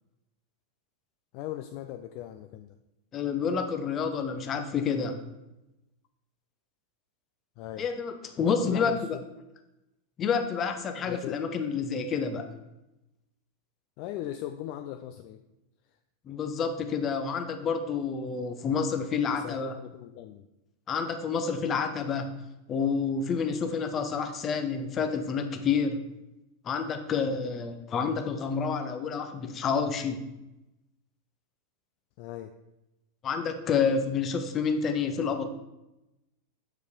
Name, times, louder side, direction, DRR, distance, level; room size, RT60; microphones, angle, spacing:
voice 1, 1.3-2.7 7.6-7.9 8.7-9.2 11.1-11.4 14.0-15.4 19.3-20.5 27.3-27.6 32.2-32.5, left 12 dB, 45° left, 7 dB, 0.4 m, -39 dB
voice 2, 3.1-5.2 7.8-9.2 10.2-12.5 16.3-19.7 20.9-22.4 22.7-26.0 26.6-30.2 33.2-35.4, left 5 dB, 25° left, 7 dB, 0.8 m, -29 dB
6.5 x 4.9 x 5.1 m, 0.95 s
figure-of-eight pair, 90°, 0 cm